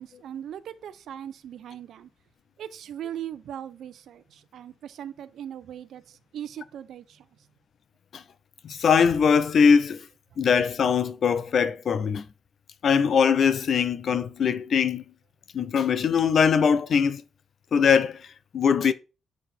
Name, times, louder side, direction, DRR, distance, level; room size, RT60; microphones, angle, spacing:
voice 1, 0.0-2.1 2.6-7.2, right 10 dB, 75° right, 0.6 m, -39 dB
voice 2, 8.6-10.0 10.4-12.3 12.8-15.0 15.5-17.2 17.7-18.2 18.5-18.9, left 6 dB, 50° left, 0.5 m, -21 dB
6.9 x 4.1 x 4.3 m
cardioid pair, 145°, 0 cm